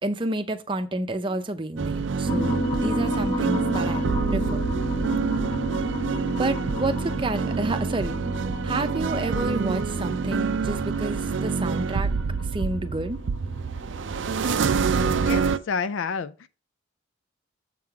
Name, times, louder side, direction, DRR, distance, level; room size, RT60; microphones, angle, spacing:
voice 1, 0.0-4.0 4.3-4.6 6.4-8.2 8.6-12.1 12.4-13.2, right 1 dB, 25° right, 0.6 m, -30 dB
sound 1, 1.8-15.6, right 5 dB, 65° right, 0.5 m, -27 dB
sound 2, 2.2-14.7, equal, 20° left, 0.5 m, -32 dB
voice 2, 15.0-16.5, left 5 dB, 75° left, 0.4 m, -30 dB
7.4 x 3.8 x 5.7 m
head